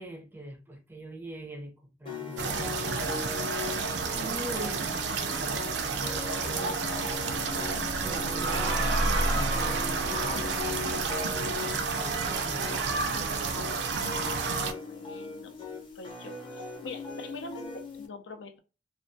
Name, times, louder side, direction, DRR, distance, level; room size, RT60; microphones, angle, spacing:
voice 1, 0.0-3.1 4.1-5.1 5.4-6.8 8.0-8.6 9.3-9.8 10.1-11.0 11.6-13.4, right 1 dB, 10° right, 0.5 m, -43 dB
sound 1, 2.1-18.1, left 4 dB, 30° left, 0.6 m, -40 dB
sound 2, 2.4-14.7, right 4 dB, 70° right, 0.4 m, -30 dB
sound 3, 5.7-12.8, equal, 60° left, 0.8 m, -35 dB
voice 2, 14.7-15.6 15.9-18.6, left 3 dB, 85° left, 0.5 m, -44 dB
2.2 x 2.2 x 2.6 m
head